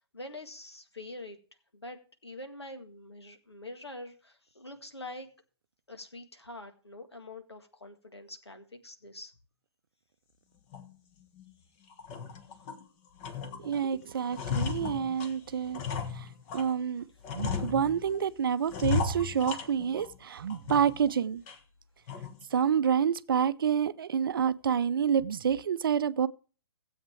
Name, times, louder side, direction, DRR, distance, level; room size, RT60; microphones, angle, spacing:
voice 1, 0.0-1.4 1.7-5.3 5.9-9.4, left 2 dB, 85° left, 1.7 m, -45 dB
sound 1, 10.7-10.9 11.4-11.5 11.9-12.8 13.2-13.8 14.1-16.8 17.2-18.2 18.7-20.2 20.5-21.1 21.5-21.6 22.1-22.4, left 5 dB, 30° left, 1.3 m, -35 dB
voice 2, 13.6-15.8 16.1-16.3 16.5-17.1 17.3-21.4 22.5-26.3, right 8 dB, 60° right, 0.6 m, -28 dB
16.0 x 8.0 x 3.4 m
figure-of-eight pair, 125°, 13 cm